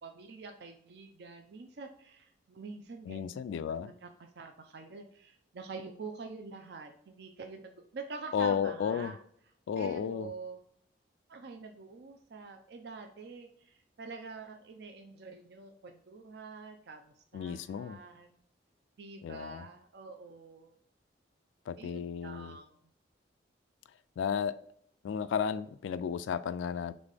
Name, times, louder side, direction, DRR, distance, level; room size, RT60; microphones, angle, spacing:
voice 1, 0.0-4.1 4.4-9.2 9.8-10.6 11.3-18.4 19.0-20.7 21.8-22.8, right 4 dB, 60° right, 0.4 m, -46 dB
voice 2, 3.1-3.9 8.3-9.1 9.7-10.3 17.3-18.0 19.2-19.7 21.7-22.6 24.2-24.6 25.0-26.9, left 7 dB, 85° left, 0.3 m, -33 dB
4.0 x 3.6 x 3.3 m
head